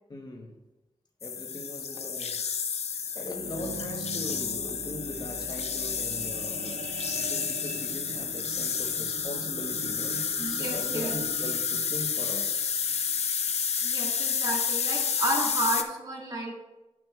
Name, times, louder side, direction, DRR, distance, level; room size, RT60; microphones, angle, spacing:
voice 1, 0.1-0.6 1.2-2.4 3.1-6.9 7.1-12.7, left 2 dB, 35° left, 1.1 m, -40 dB
sound 1, 1.2-15.8, left 6 dB, 65° left, 0.5 m, -30 dB
sound 2, 3.1-13.6 14.2-14.3, right 4 dB, 70° right, 0.8 m, -42 dB
voice 2, 10.4-11.2 13.8-16.5, right 1 dB, 35° right, 1.9 m, -32 dB
10.5 x 6.1 x 2.4 m
wide cardioid pair, 120°, 12 cm